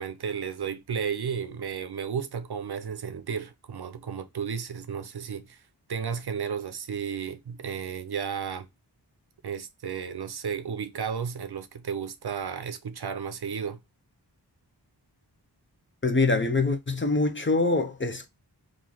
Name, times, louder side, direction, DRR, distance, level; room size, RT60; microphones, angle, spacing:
voice 1, 0.0-5.6 5.9-8.7 9.4-13.8, right 7 dB, 70° right, 0.6 m, -33 dB
voice 2, 16.0-18.3, left 3 dB, 30° left, 0.6 m, -24 dB
3.1 x 2.5 x 3.8 m
wide cardioid pair, 65°, 41 cm